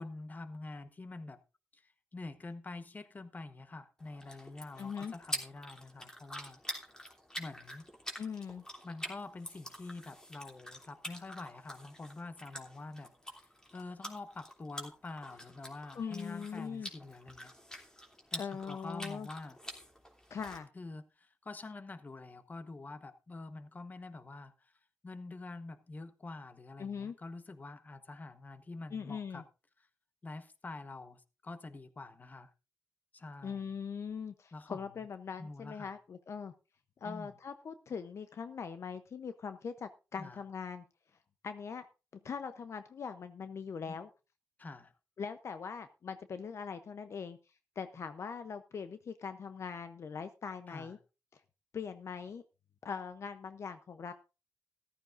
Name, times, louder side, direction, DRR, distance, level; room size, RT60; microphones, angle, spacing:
voice 1, 0.0-1.4 1.7-6.6 7.4-7.9 8.8-17.5 18.3-19.6 20.7-24.7 25.0-29.4 30.2-32.5 33.1-33.7 34.5-34.8 35.4-35.9 37.0-37.3 40.2-40.4 43.9-44.0 44.6-44.9 50.7-50.9, left 3 dB, 30° left, 1.2 m, -46 dB
sound 1, 4.0-20.6, equal, 10° left, 2.9 m, -46 dB
voice 2, 4.8-5.1 8.2-8.6 15.9-16.9 18.4-19.3 20.3-20.7 26.8-27.2 28.9-29.4 33.4-36.5 37.0-40.8 41.4-41.9 42.2-44.1 45.2-47.4 47.8-51.0 51.3-51.4 51.7-52.4 52.8-54.1, left 6 dB, 60° left, 0.7 m, -41 dB
14.0 x 13.0 x 2.6 m
cardioid pair, 100°, 6 cm